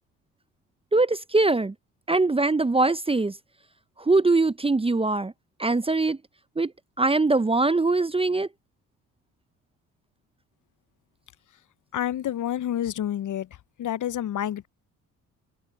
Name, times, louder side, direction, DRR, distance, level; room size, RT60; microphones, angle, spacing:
voice 1, 0.9-1.7 2.1-3.4 4.0-5.3 5.6-6.2 6.6-6.7 7.0-8.5, right 3 dB, 15° right, 0.8 m, -22 dB
voice 2, 11.9-13.5 13.8-14.7, left 11 dB, 45° left, 0.8 m, -28 dB
open air
hypercardioid pair, 50°, 41 cm